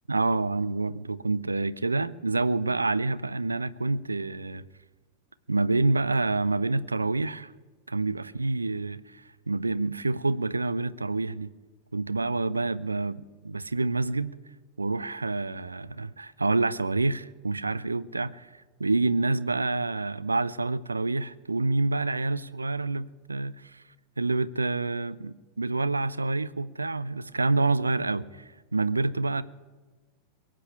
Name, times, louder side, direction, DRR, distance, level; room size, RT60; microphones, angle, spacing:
voice 1, 0.1-4.6 5.5-7.5 7.9-11.5 11.9-14.3 14.8-23.8 24.2-29.4, right 3 dB, 80° right, 18 dB, 0.5 m, -28 dB
22.5 x 7.6 x 8.2 m, 1.3 s
figure-of-eight pair, 90°, 0 cm